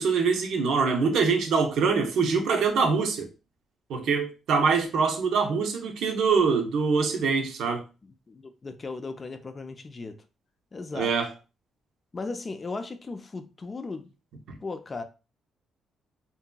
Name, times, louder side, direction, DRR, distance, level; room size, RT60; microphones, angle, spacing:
voice 1, 0.0-3.3 3.9-7.8 10.9-11.3 14.5-14.6, right 5 dB, 75° right, 0.6 m, -24 dB
voice 2, 8.3-10.2 10.7-11.1 12.1-14.1 14.6-15.0, left 3 dB, 30° left, 0.4 m, -36 dB
2.8 x 2.6 x 2.2 m
cardioid pair, 90°, 0 cm